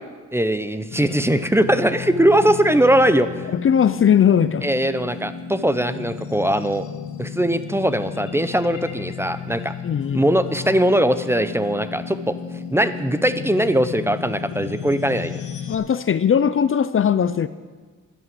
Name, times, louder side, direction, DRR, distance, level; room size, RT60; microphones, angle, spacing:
voice 1, 0.3-3.5 4.6-6.8 7.2-9.7 10.1-12.4 12.7-15.3, right 1 dB, 10° right, 12 dB, 0.7 m, -20 dB
sound 1, 0.9-15.7, left 7 dB, 80° left, 1.2 m, -33 dB
voice 2, 3.5-4.7 9.8-10.2 15.7-17.5, left 8 dB, 45° left, 14 dB, 0.5 m, -19 dB
11.5 x 11.0 x 7.7 m, 1.5 s
cardioid pair, 80°, 30 cm